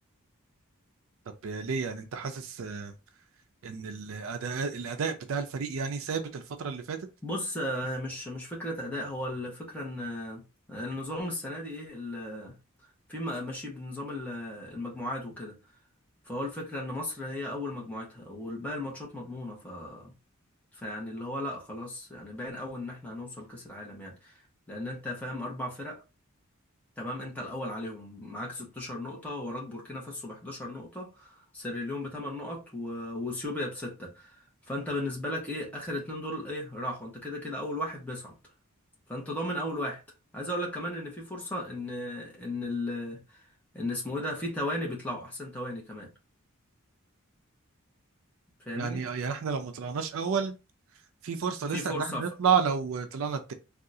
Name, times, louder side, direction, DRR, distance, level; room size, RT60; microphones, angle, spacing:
voice 1, 1.4-2.9 3.6-7.0 48.8-50.6 51.2-53.5, right 6 dB, 65° right, 0.4 m, -31 dB
voice 2, 7.2-10.4 10.7-12.6 13.1-15.6 16.3-20.1 20.7-24.4 24.7-26.0 27.0-34.4 34.7-38.3 39.1-40.0 40.3-43.4 43.7-46.1 48.6-49.0 51.7-52.2, left 1 dB, 5° left, 1.0 m, -36 dB
3.6 x 2.4 x 2.7 m
head